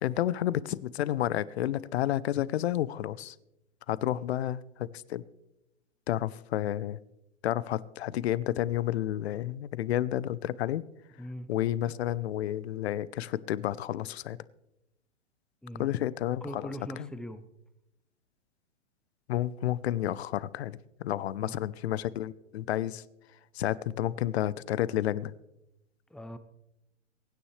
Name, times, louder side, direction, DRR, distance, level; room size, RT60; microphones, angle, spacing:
voice 1, 0.0-3.4 3.9-5.2 6.1-7.0 7.4-10.8 11.5-14.4 15.8-16.7 17.0-17.1 19.3-23.0 23.5-25.3, left 12 dB, 60° left, 20 dB, 0.7 m, -30 dB
voice 2, 11.2-11.5 15.6-15.9 16.4-17.4 21.4-21.6 26.1-26.4, equal, ahead, 11 dB, 0.6 m, -41 dB
23.0 x 9.8 x 3.3 m, 0.89 s
hypercardioid pair, 120°, 36 cm